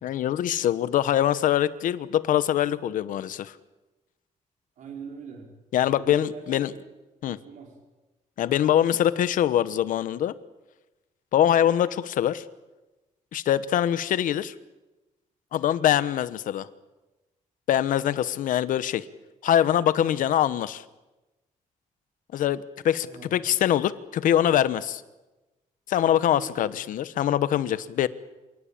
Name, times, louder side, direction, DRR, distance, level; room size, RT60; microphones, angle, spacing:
voice 1, 0.0-3.5 5.7-6.7 7.2-7.4 8.4-10.3 11.3-12.4 13.3-14.5 15.5-16.7 17.7-19.0 19.4-20.8 22.3-25.0 25.9-28.1, left 11 dB, 75° left, 15 dB, 1.1 m, -23 dB
voice 2, 4.8-6.4 6.7-6.9 7.2-7.7 23.1-23.3 26.4-26.7, right 5 dB, 70° right, 2 dB, 5.3 m, -43 dB
28.0 x 18.0 x 8.7 m, 1.1 s
wide cardioid pair, 175°, 14 cm